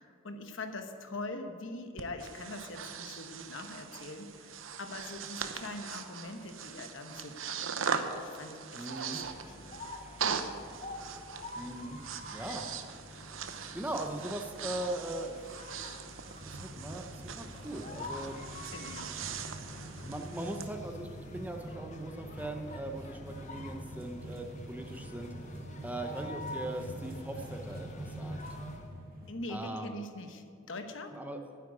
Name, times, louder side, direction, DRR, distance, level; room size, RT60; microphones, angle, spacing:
voice 1, 0.0-9.2 9.5-9.6 18.7-19.1 29.3-31.1, left 2 dB, 65° left, 7 dB, 1.1 m, -43 dB
Breathing, 2.0-20.7, right 6 dB, 75° right, 0.8 m, -40 dB
voice 2, 8.7-9.2 11.6-12.0 12.3-12.7 13.7-15.4 16.5-18.4 20.1-25.3 25.8-28.4 29.5-30.0 31.1-31.4, right 1 dB, 10° right, 4 dB, 0.7 m, -40 dB
sound 1, 9.2-28.9, left 2 dB, 35° left, 0.7 m, -47 dB
sound 2, 16.3-29.3, right 1 dB, 45° right, 2.0 m, -45 dB
9.6 x 8.3 x 9.6 m, 2.4 s
head